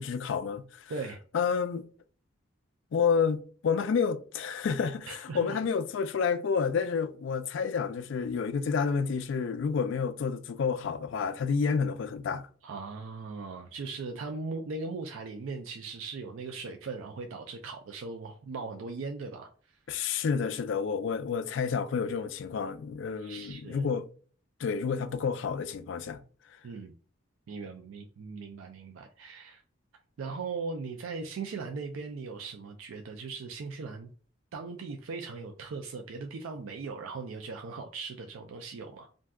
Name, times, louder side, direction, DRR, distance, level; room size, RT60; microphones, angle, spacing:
voice 1, 0.0-0.9 1.3-1.8 2.9-12.5 19.9-24.1 24.6-26.2, left 6 dB, 65° left, 0.3 m, -29 dB
voice 2, 5.1-5.6 12.6-19.8 23.2-23.8 26.6-26.9 27.5-29.6 30.2-34.1 34.5-39.1, right 4 dB, 80° right, 0.4 m, -39 dB
2.5 x 2.2 x 3.5 m
head